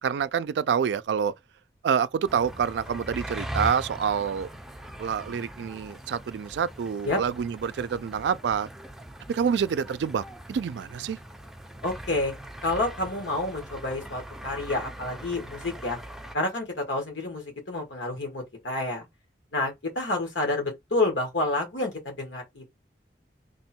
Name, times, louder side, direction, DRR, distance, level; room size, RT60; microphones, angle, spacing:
voice 1, 0.0-1.3 1.8-4.5 5.0-8.7 9.3-11.2, right 7 dB, 70° right, 0.3 m, -27 dB
sound 1, 2.3-16.3, right 1 dB, ahead, 0.5 m, -40 dB
voice 2, 11.8-12.3 12.6-16.0 16.3-19.0 19.5-22.8, left 2 dB, 90° left, 1.6 m, -29 dB
3.4 x 2.2 x 4.3 m
head